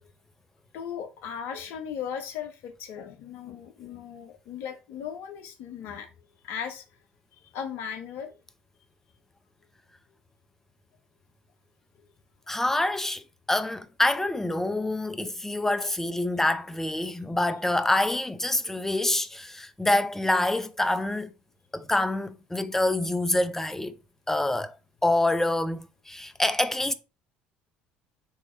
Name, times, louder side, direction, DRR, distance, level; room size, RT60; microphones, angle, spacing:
voice 1, 0.7-6.1 6.4-6.8 7.4-8.4, left 8 dB, 65° left, 0.8 m, -37 dB
voice 2, 12.5-21.3 21.7-24.0 24.3-24.8 25.0-26.9, left 1 dB, 10° left, 0.8 m, -26 dB
7.3 x 3.2 x 4.3 m
hypercardioid pair, 70°, 4 cm